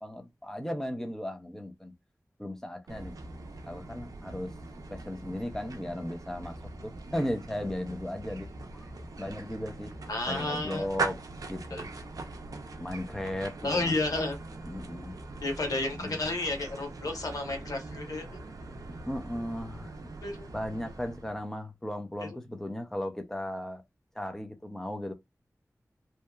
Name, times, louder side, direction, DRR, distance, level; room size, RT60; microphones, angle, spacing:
voice 1, 0.0-1.9 2.4-3.1 3.6-4.5 4.9-6.6 6.8-8.9 9.2-9.9 10.3-11.2 11.5-11.9 12.8-13.5 13.8-13.9 14.6-15.2 15.9-16.2 19.1-19.9 20.5-23.8 24.2-25.1, left 1 dB, 5° left, 0.6 m, -36 dB
sound 1, 2.9-21.5, right 3 dB, 85° right, 0.4 m, -41 dB
voice 2, 10.1-10.9 11.7-11.8 13.6-14.4 15.4-18.4 20.2-20.5 22.2-22.3, left 2 dB, 85° left, 0.9 m, -31 dB
2.8 x 2.1 x 2.2 m
wide cardioid pair, 55°, 6 cm